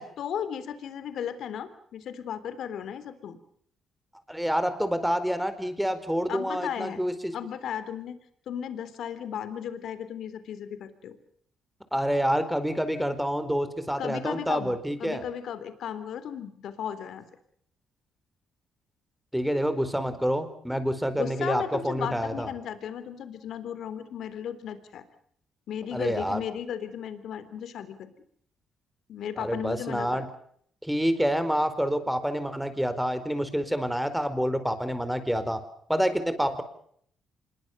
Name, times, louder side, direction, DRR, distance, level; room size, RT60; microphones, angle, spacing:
voice 1, 0.2-3.4 6.3-7.0 7.3-8.2 8.4-11.2 14.0-14.7 15.0-17.2 21.2-25.0 25.7-28.1 29.1-30.3, left 8 dB, 70° left, 12 dB, 3.5 m, -35 dB
voice 2, 4.3-7.3 11.9-15.2 19.3-22.5 25.9-26.4 29.4-30.3 30.8-35.6 35.9-36.6, equal, 5° right, 11 dB, 4.5 m, -27 dB
26.5 x 22.0 x 6.8 m, 0.64 s
cardioid pair, 90°, 0 cm